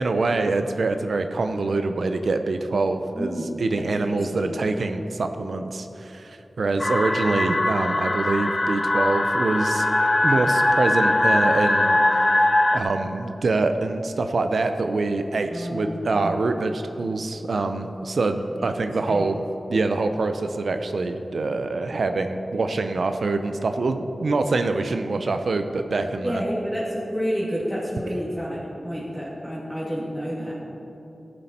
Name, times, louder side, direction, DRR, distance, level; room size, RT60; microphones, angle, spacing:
voice 1, 0.0-3.3 3.6-9.9 10.2-12.2 12.7-19.4 19.7-26.4, right 3 dB, 80° right, 7 dB, 0.6 m, -25 dB
voice 2, 3.1-3.5 3.7-4.5 15.5-16.3 18.6-18.8 19.1-19.2 26.2-30.5, equal, ahead, -8 dB, 2.6 m, -29 dB
sound 1, 6.8-12.8, left 1 dB, 30° left, 0.8 m, -21 dB
14.0 x 7.6 x 4.3 m, 3.0 s
wide cardioid pair, 60°, 0 cm